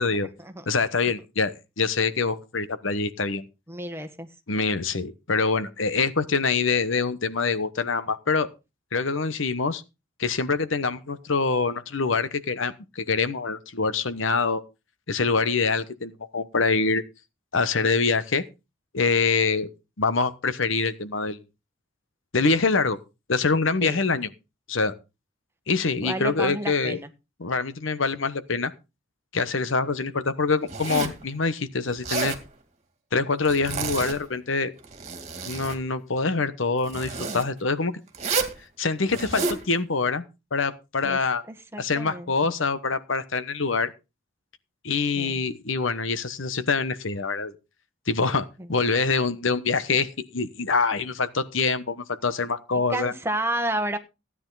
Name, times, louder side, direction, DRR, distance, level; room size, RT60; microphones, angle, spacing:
voice 1, 0.7-3.5 4.5-8.5 8.9-9.8 10.2-14.6 15.1-17.0 17.5-18.4 18.9-19.7 20.0-21.4 22.3-23.0 23.3-24.3 24.7-24.9 25.7-27.0 27.4-28.7 29.3-32.4 33.1-34.7 35.5-38.0 38.8-40.2 40.5-41.4 41.8-43.9 44.8-47.5 48.1-53.1, left 4 dB, 75° left, 1.1 m, -25 dB
voice 2, 3.7-4.3 23.8-24.0 26.0-27.1 41.0-41.2 41.5-42.3 45.1-45.5 48.6-48.7 52.9-54.0, right 1 dB, 10° right, 1.4 m, -31 dB
Zipper (clothing), 30.7-31.2 31.9-32.4 33.4-34.2 34.8-35.8 36.9-37.4 38.1-38.6 39.1-39.6, right 4 dB, 35° right, 2.3 m, -30 dB
16.0 x 9.7 x 4.0 m
head